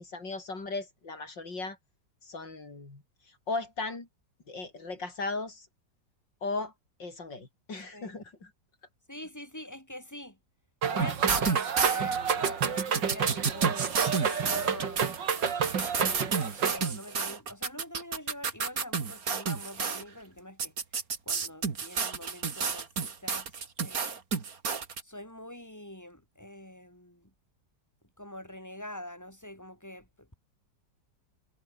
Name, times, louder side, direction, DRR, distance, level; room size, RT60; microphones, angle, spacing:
voice 1, 0.0-1.8 2.2-3.0 3.5-4.1 4.5-5.7 6.4-6.7 7.0-8.5, left 3 dB, 80° left, 5.4 m, -37 dB
voice 2, 9.1-10.4 10.9-15.2 16.0-20.7 21.3-23.5 23.8-24.2 25.0-27.3 28.2-30.4, left 1 dB, 10° left, 7.6 m, -44 dB
sound 1, 10.8-16.8, right 7 dB, 90° right, 2.6 m, -29 dB
sound 2, 11.0-20.0 20.6-25.0, right 5 dB, 55° right, 2.4 m, -31 dB
omnidirectional pair, 1.9 m